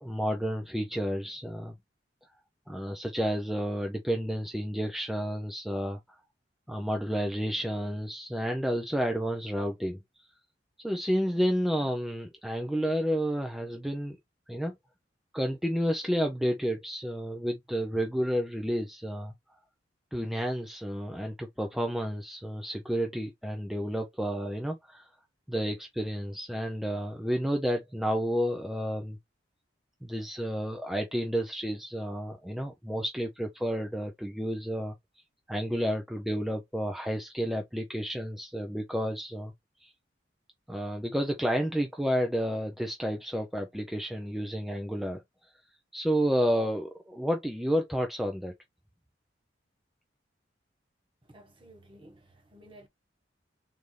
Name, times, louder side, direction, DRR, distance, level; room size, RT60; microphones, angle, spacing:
voice 1, 0.0-1.8 2.7-6.2 6.7-10.3 10.8-14.2 14.5-14.7 15.3-19.3 20.1-25.1 25.5-29.2 30.0-34.9 35.5-39.5 39.8-39.9 40.7-45.5 45.9-48.5, equal, ahead, 0.5 m, -31 dB
voice 2, 51.2-52.9, right 1 dB, 25° right, 1.3 m, -54 dB
3.9 x 3.5 x 3.2 m
head